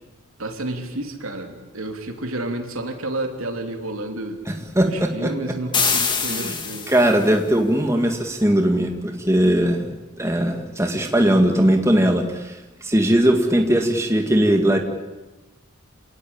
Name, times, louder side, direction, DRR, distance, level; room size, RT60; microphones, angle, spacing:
voice 1, 0.4-4.4 4.8-6.9, right 2 dB, 85° right, 4 dB, 3.3 m, -30 dB
voice 2, 4.7-5.3 6.3-6.6 6.9-9.9 10.2-14.8, right 1 dB, 15° right, 4 dB, 2.0 m, -19 dB
sound 1, 5.7-7.3, left 5 dB, 20° left, 2.2 m, -24 dB
27.5 x 18.5 x 8.8 m, 1.1 s
head